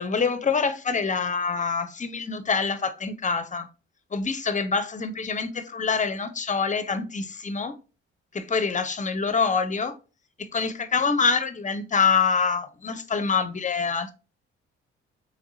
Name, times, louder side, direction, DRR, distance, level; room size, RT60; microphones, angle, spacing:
voice 1, 0.0-3.7 4.1-7.7 8.3-10.0 10.4-14.1, left 5 dB, 25° left, 0.6 m, -25 dB
3.6 x 3.3 x 2.7 m
hypercardioid pair, 40°, 32 cm